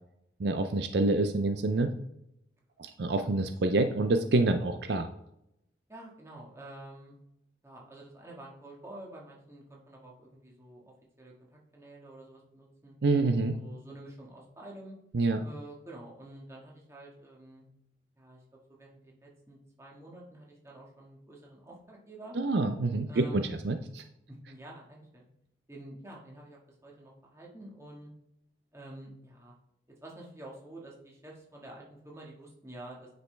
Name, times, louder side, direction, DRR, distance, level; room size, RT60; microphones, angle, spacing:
voice 1, 0.4-1.9 2.8-5.1 13.0-13.6 15.1-15.5 22.3-24.0, right 2 dB, 65° right, 8 dB, 0.5 m, -27 dB
voice 2, 5.9-7.1 7.6-12.9 13.5-14.9 15.4-17.6 18.1-22.4 23.1-23.6 24.3-25.2 25.7-28.1 28.7-29.6 30.0-33.1, right 1 dB, 15° right, -3 dB, 1.7 m, -48 dB
9.4 x 5.2 x 3.3 m, 0.81 s
head